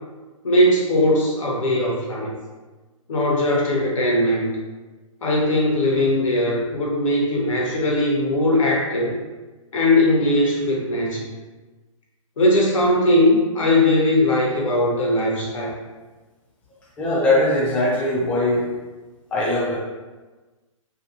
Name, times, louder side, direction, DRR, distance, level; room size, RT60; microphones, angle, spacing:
voice 1, 0.4-2.3 3.1-4.6 5.2-9.1 9.7-11.3 12.4-15.7, left 1 dB, 70° left, -3 dB, 1.0 m, -19 dB
voice 2, 17.0-18.7 19.3-19.8, left 1 dB, 5° left, -5 dB, 0.3 m, -20 dB
2.8 x 2.3 x 2.5 m, 1.3 s
hypercardioid pair, 145°, 18 cm